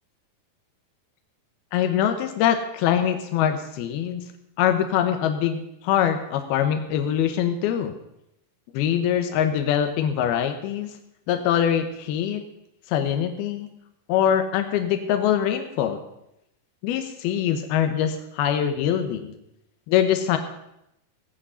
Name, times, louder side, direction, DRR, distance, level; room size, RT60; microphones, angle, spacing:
voice 1, 1.7-4.3 4.6-7.9 8.7-10.9 11.3-12.4 12.9-13.7 14.1-16.0 16.8-19.3 19.9-20.4, left 9 dB, 90° left, 7 dB, 2.8 m, -23 dB
17.0 x 8.8 x 5.6 m, 0.82 s
omnidirectional pair, 4.3 m